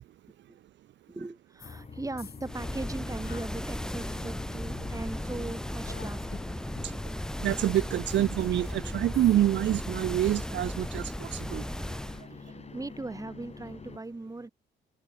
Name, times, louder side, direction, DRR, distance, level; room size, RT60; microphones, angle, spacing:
voice 1, 1.1-7.0 12.4-14.5, right 2 dB, 15° right, 4.7 m, -39 dB
sound 1, 1.6-1.9 2.2-4.4 4.7-9.4, left 8 dB, 50° left, 2.7 m, -49 dB
sound 2, 1.6-14.0, left 4 dB, 30° left, 5.2 m, -46 dB
sound 3, 2.5-12.2, left 1 dB, 5° left, 1.2 m, -36 dB
voice 2, 7.4-11.6, right 13 dB, 65° right, 0.6 m, -27 dB
cardioid pair, 90°, 20 cm